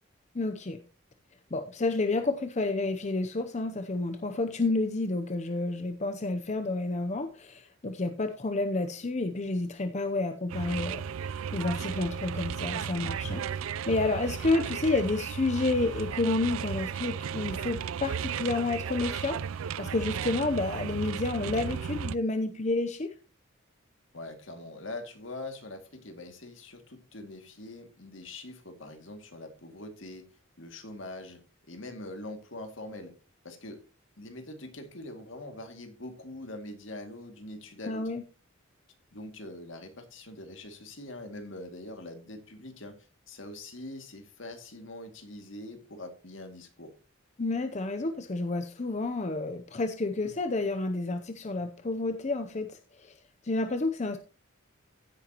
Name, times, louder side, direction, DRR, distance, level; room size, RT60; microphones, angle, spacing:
voice 1, 0.3-0.8 1.5-13.4 13.9-23.1 37.9-38.2 47.4-53.1 53.4-54.2, left 2 dB, 35° left, 8 dB, 0.7 m, -30 dB
sound 1, 10.5-22.2, right 7 dB, 90° right, 0.4 m, -34 dB
voice 2, 24.1-30.3 30.6-31.4 31.7-33.1 33.4-33.8 34.2-38.1 39.1-43.0 43.3-46.9, left 2 dB, 65° left, 6 dB, 2.3 m, -43 dB
15.5 x 9.0 x 2.9 m, 0.34 s
head